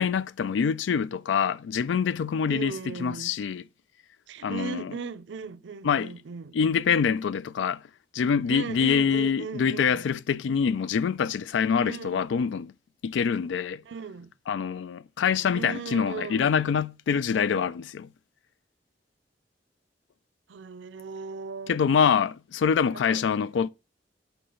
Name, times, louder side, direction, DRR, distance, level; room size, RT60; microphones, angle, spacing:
voice 1, 0.0-3.6 4.4-4.9 5.8-6.1 6.5-7.8 8.1-12.7 13.0-13.8 14.5-18.1 21.7-23.7, left 6 dB, 85° left, 0.3 m, -25 dB
voice 2, 2.5-3.4 4.3-6.6 8.5-10.1 11.7-12.2 13.8-14.3 15.5-16.6 20.5-21.9 23.1-23.3, right 5 dB, 80° right, 0.5 m, -37 dB
6.8 x 4.4 x 3.8 m
head